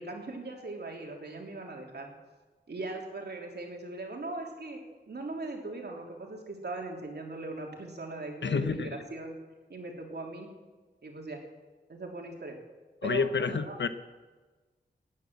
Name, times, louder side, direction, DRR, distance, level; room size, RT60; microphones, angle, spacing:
voice 1, 0.0-2.1 2.7-4.8 5.1-9.3 9.7-10.5 11.0-11.4 11.9-12.6 13.0-13.8, right 2 dB, 65° right, 1 dB, 3.1 m, -39 dB
voice 2, 8.4-9.0 13.0-13.9, left 5 dB, 85° left, 11 dB, 1.0 m, -29 dB
18.5 x 9.8 x 7.3 m, 1.3 s
wide cardioid pair, 100°, 18 cm